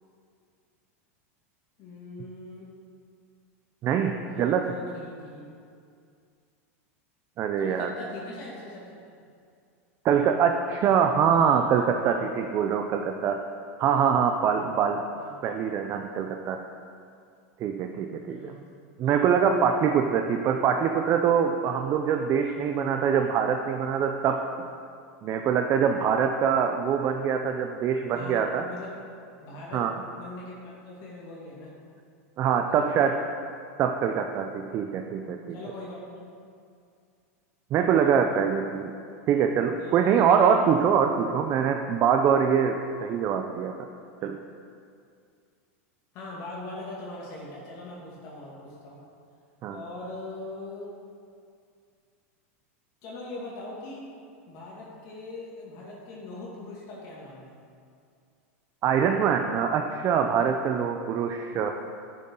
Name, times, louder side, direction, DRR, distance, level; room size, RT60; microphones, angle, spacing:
voice 1, 1.8-2.7 4.2-5.4 7.6-8.8 15.1-15.3 18.3-18.6 28.1-29.0 29.4-29.9 30.1-31.7 32.7-32.8 35.5-36.3 38.2-38.3 39.7-40.2 46.1-49.0 49.7-50.9 53.0-54.1 54.5-57.5, left 2 dB, 45° left, -5 dB, 2.2 m, -41 dB
voice 2, 3.8-4.6 7.4-7.9 10.0-13.4 13.8-15.0 15.4-16.6 17.6-18.5 19.0-24.4 25.2-28.6 29.7-29.9 32.4-33.2 33.8-35.6 37.7-38.9 39.3-43.7 44.2-44.4 49.6-49.8 58.8-61.7, right 7 dB, 35° right, 5 dB, 0.5 m, -24 dB
11.0 x 7.7 x 3.8 m, 2.3 s
supercardioid pair, 130°, 8 cm